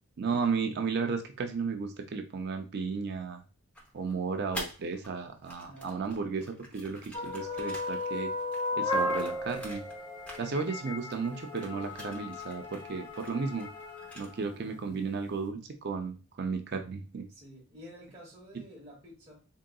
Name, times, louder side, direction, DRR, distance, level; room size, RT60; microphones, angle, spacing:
voice 1, 0.2-3.4 3.9-8.3 8.8-9.8 10.4-13.7 14.2-17.2, right 5 dB, 45° right, 6 dB, 0.4 m, -34 dB
sound 1, 3.8-5.1 5.4-10.0 10.2-10.9 11.1-14.5, equal, 5° left, 0.7 m, -47 dB
voice 2, 5.6-6.0 12.9-13.0 14.5-15.0 17.3-19.4, equal, 25° right, -7 dB, 1.1 m, -51 dB
sound 2, 7.1-14.7, left 2 dB, 20° left, 1.1 m, -35 dB
3.7 x 3.7 x 2.3 m, 0.33 s
head